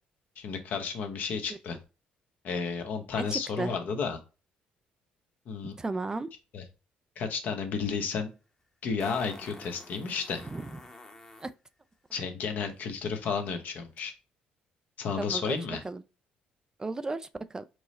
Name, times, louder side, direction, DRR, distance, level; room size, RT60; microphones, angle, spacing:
voice 1, 0.4-1.8 2.4-4.2 5.5-5.7 6.5-6.6 7.2-8.3 8.8-10.4 12.1-14.1 15.0-15.8, left 5 dB, 65° left, 0.9 m, -32 dB
voice 2, 3.1-3.7 5.8-6.3 10.4-10.8 11.4-11.5 15.2-15.6 15.8-16.0 16.8-17.7, right 3 dB, 20° right, 0.3 m, -35 dB
Fart, 7.9-8.0 9.0-11.5 14.0-14.1, left 2 dB, 20° left, 0.9 m, -48 dB
4.6 x 2.1 x 4.0 m
supercardioid pair, 80°, 3 cm